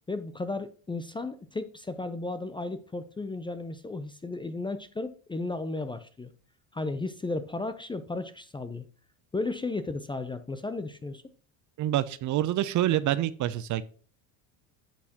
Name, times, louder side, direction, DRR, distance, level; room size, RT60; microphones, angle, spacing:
voice 1, 0.1-6.3 6.7-8.9 9.3-11.2, left 3 dB, 10° left, 11 dB, 0.4 m, -34 dB
voice 2, 11.8-13.8, right 13 dB, 45° right, 16 dB, 0.5 m, -27 dB
10.0 x 6.4 x 2.8 m, 0.42 s
supercardioid pair, 105°, 43 cm